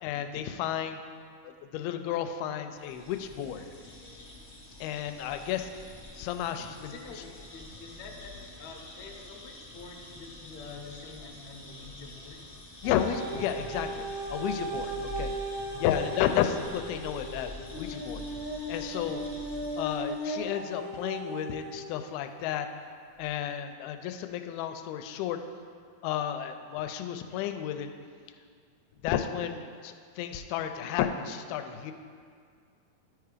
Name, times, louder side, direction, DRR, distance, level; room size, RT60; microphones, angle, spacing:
voice 1, 0.0-1.0 1.4-3.6 4.8-5.7 6.2-6.9 12.8-15.3 15.8-18.2 18.7-19.2 19.8-22.7 23.2-25.4 26.0-27.9 29.0-31.9, left 10 dB, 90° left, 7 dB, 2.5 m, -32 dB
sound 1, 2.7-20.5, left 2 dB, 55° left, 0.7 m, -46 dB
voice 2, 6.8-12.5 14.9-15.9, left 4 dB, 75° left, 1 dB, 1.7 m, -47 dB
sound 2, 12.8-21.9 22.6-22.7, right 1 dB, 80° right, 1.2 m, -37 dB
12.5 x 4.7 x 5.0 m, 2.1 s
omnidirectional pair, 4.3 m